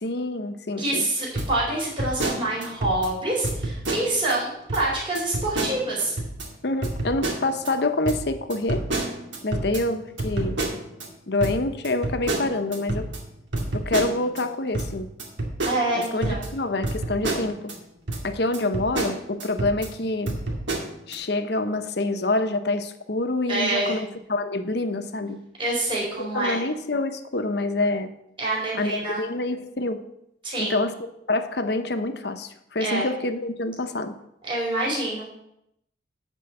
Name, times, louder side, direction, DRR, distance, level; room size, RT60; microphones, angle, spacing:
voice 1, 0.0-1.1 6.6-8.9 9.4-10.6 11.3-13.1 13.7-15.1 15.9-17.7 18.2-20.4 21.1-25.4 26.2-28.1 28.8-30.0 30.6-31.0 31.3-34.1, left 2 dB, 60° left, 8 dB, 0.8 m, -26 dB
voice 2, 0.8-6.2 15.6-16.5 23.5-24.0 25.6-26.6 28.4-29.2 30.4-30.8 32.8-33.1 34.5-35.3, right 2 dB, 25° right, -6 dB, 4.1 m, -26 dB
sound 1, 1.4-3.1 3.4-4.4 4.7-4.9 5.1-6.5 6.8-7.7 8.1-11.1 11.4-14.4 14.7-17.8 18.1-18.2 18.5-19.9 20.3-21.1, right 2 dB, 75° right, 2.1 m, -29 dB
11.5 x 4.6 x 7.7 m, 0.78 s
head